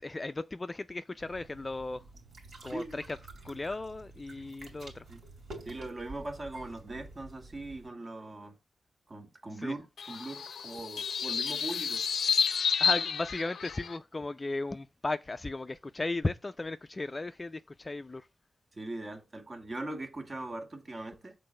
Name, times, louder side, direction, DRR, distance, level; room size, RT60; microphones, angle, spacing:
voice 1, 0.0-2.0 2.6-3.2 3.4-5.1 9.6-9.7 12.8-18.3, left 2 dB, 25° left, 0.4 m, -36 dB
sound 1, 1.2-7.9, right 2 dB, 75° right, 2.9 m, -49 dB
voice 2, 2.7-3.0 5.1-5.2 5.7-8.6 9.1-12.1 18.7-21.3, right 2 dB, 35° right, 1.9 m, -40 dB
sound 2, 10.0-14.0, left 6 dB, 80° left, 0.5 m, -30 dB
6.7 x 4.0 x 6.3 m
wide cardioid pair, 90°, 0 cm